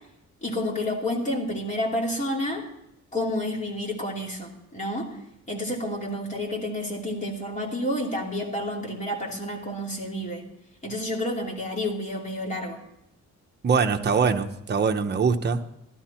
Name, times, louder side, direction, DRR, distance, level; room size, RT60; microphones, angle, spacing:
voice 1, 0.4-2.6 3.1-5.2 5.5-10.4 10.8-12.8, left 1 dB, 25° left, -1 dB, 2.9 m, -30 dB
voice 2, 13.6-15.7, right 5 dB, 35° right, 5 dB, 0.9 m, -23 dB
15.0 x 12.5 x 4.4 m, 0.83 s
cardioid pair, 150°, 29 cm